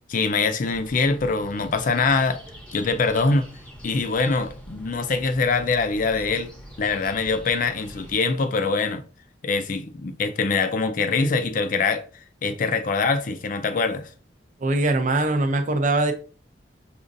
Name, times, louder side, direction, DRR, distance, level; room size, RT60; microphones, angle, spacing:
voice 1, 0.1-2.4 2.7-3.5 3.8-6.5 6.8-9.0 9.4-12.0 12.4-14.1, left 4 dB, 45° left, 0.4 m, -23 dB
sound 1, 0.7-8.2, equal, 5° left, 0.8 m, -43 dB
voice 2, 14.6-16.1, right 2 dB, 45° right, 0.5 m, -22 dB
5.0 x 2.4 x 2.5 m
head